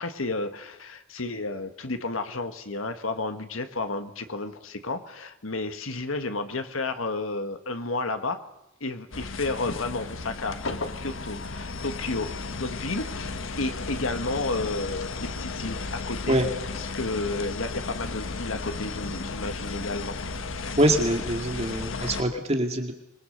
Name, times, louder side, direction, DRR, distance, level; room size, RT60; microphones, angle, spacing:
voice 1, 0.0-8.4 8.8-10.6 10.9-16.4 16.7-20.3, left 3 dB, 85° left, 8 dB, 1.6 m, -32 dB
sound 1, 9.1-22.2, left 3 dB, 70° left, 1.4 m, -34 dB
voice 2, 20.8-22.9, right 1 dB, 30° right, 4 dB, 2.2 m, -24 dB
26.5 x 22.0 x 6.6 m, 0.85 s
head